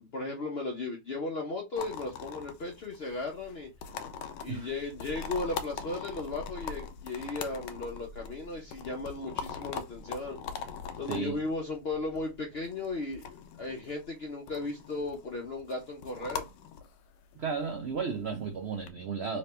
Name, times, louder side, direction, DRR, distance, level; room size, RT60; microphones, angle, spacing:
voice 1, 0.1-3.7 4.4-10.4 11.0-16.5, left 3 dB, 60° left, 0.6 m, -36 dB
sound 1, 1.8-18.9, left 6 dB, 80° left, 1.2 m, -42 dB
voice 2, 11.1-11.4 17.4-19.4, right 5 dB, 75° right, 0.5 m, -34 dB
3.2 x 2.9 x 3.2 m
omnidirectional pair, 1.9 m